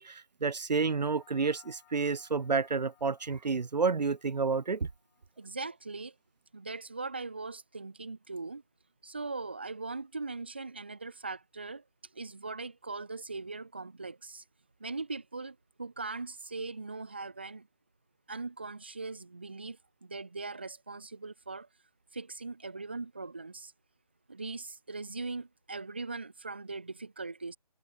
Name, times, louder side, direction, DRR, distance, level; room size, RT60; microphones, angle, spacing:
voice 1, 0.0-4.9, right 4 dB, 90° right, 0.8 m, -30 dB
sound 1, 0.8-5.5, left 22 dB, 5° left, 4.8 m, -64 dB
voice 2, 5.4-6.1 6.5-8.6 9.0-11.8 12.1-14.4 14.8-17.7 18.3-21.7 22.1-23.7 24.3-27.6, right 3 dB, 15° right, 0.9 m, -40 dB
figure-of-eight pair, 175°, 21 cm